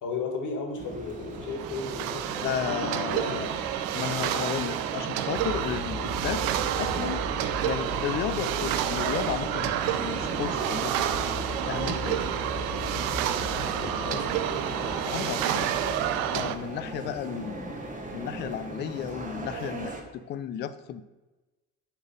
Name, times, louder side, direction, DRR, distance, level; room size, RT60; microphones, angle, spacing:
voice 1, 0.0-2.5 2.8-3.5 13.7-14.4, left 4 dB, 45° left, 2 dB, 1.8 m, -35 dB
sound 1, 0.8-20.0, right 2 dB, 20° right, 1.2 m, -38 dB
sound 2, 1.3-16.5, right 11 dB, 55° right, 0.6 m, -30 dB
voice 2, 2.4-3.5 3.9-6.4 6.8-7.2 7.6-11.1 11.7-12.2 15.1-15.7 16.3-17.7 18.1-21.0, left 9 dB, 25° left, 12 dB, 0.4 m, -33 dB
sound 3, 5.3-16.7, left 2 dB, 70° left, 2.3 m, -39 dB
7.1 x 3.5 x 5.3 m, 1.1 s
hypercardioid pair, 65°, 43 cm